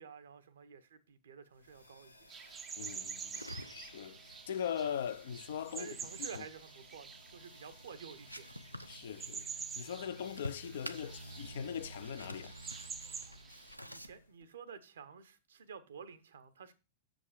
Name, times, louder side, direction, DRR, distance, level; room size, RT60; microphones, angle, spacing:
voice 1, 0.0-2.3 5.8-8.4 13.8-16.7, right 6 dB, 65° right, 0.8 m, -51 dB
sound 1, 1.6-14.4, equal, 80° left, 1.0 m, -55 dB
sound 2, 2.3-13.8, right 6 dB, 20° right, 0.5 m, -48 dB
voice 2, 2.8-6.4 8.9-9.5 9.8-12.8, left 8 dB, 60° left, 0.5 m, -41 dB
sound 3, 3.3-14.1, left 1 dB, 90° right, 0.5 m, -51 dB
6.9 x 5.2 x 5.0 m
figure-of-eight pair, 90°, 0 cm